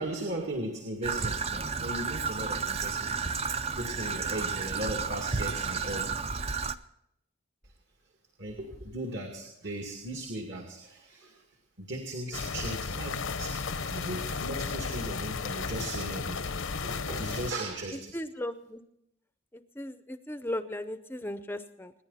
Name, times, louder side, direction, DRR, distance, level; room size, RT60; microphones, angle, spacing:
voice 1, 0.0-3.5 3.7-6.0 8.4-11.4 11.8-13.6 13.9-16.4 16.8-18.1, right 1 dB, 60° right, 2 dB, 2.4 m, -37 dB
Traffic noise roadway noise / Trickle dribble, 1.0-6.8, right 5 dB, 30° right, 0.6 m, -32 dB
sound 1, 12.3-17.5, left 4 dB, 75° left, 0.9 m, -34 dB
voice 2, 17.9-18.8 19.5-21.9, left 1 dB, 10° left, 10 dB, 0.6 m, -37 dB
26.5 x 10.5 x 4.2 m, 0.80 s
head